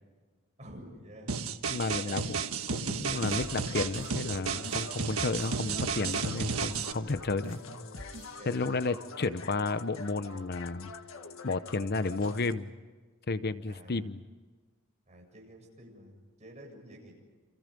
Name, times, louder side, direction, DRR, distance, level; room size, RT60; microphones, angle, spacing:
voice 1, 0.6-1.5 2.0-2.3 8.4-8.8 13.7-14.1 15.1-17.1, right 1 dB, 35° right, 0 dB, 7.7 m, -49 dB
sound 1, 1.3-6.9, right 5 dB, 90° right, 1.4 m, -33 dB
voice 2, 1.7-2.4 2.7-7.6 8.5-10.9 11.4-12.7 13.3-14.2, left 3 dB, 50° left, 12 dB, 0.8 m, -32 dB
sound 2, 2.9-3.4 3.8-4.8 5.2-6.2 6.6-7.6 8.0-8.3, right 1 dB, 70° right, 2.1 m, -48 dB
sound 3, 3.4-12.5, left 3 dB, 70° left, 1.8 m, -46 dB
29.5 x 28.0 x 5.3 m, 1.4 s
head